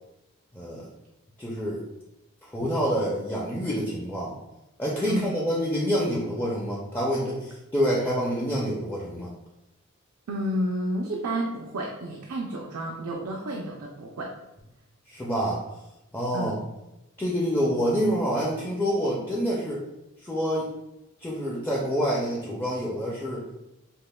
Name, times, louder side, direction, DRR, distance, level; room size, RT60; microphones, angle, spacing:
voice 1, 0.5-0.9 1.4-1.8 2.4-4.3 4.8-9.3 15.1-15.6 16.1-16.5 17.2-19.8 20.2-20.7 21.2-23.4, equal, 10° left, -5 dB, 0.4 m, -27 dB
voice 2, 5.1-5.4 10.3-14.3 16.3-16.6, right 1 dB, 85° right, 0 dB, 0.5 m, -31 dB
5.3 x 2.1 x 2.2 m, 0.93 s
head